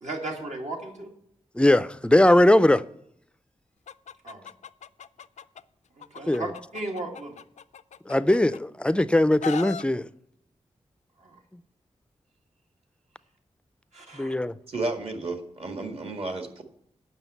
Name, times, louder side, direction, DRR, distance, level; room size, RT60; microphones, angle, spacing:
voice 1, 0.0-1.1 4.2-4.5 6.0-7.4 11.2-11.4 13.9-14.4, right 2 dB, 75° right, 2.1 m, -36 dB
voice 2, 1.6-2.8 6.3-6.5 8.1-10.1 14.1-14.5, left 1 dB, 10° left, 0.4 m, -20 dB
Chicken rooster, 3.9-5.6 6.0-8.6 9.0-9.8, left 8 dB, 75° left, 0.4 m, -38 dB
voice 3, 14.7-16.6, right 2 dB, 55° right, 1.8 m, -32 dB
9.0 x 6.2 x 8.2 m
wide cardioid pair, 120°, 12 cm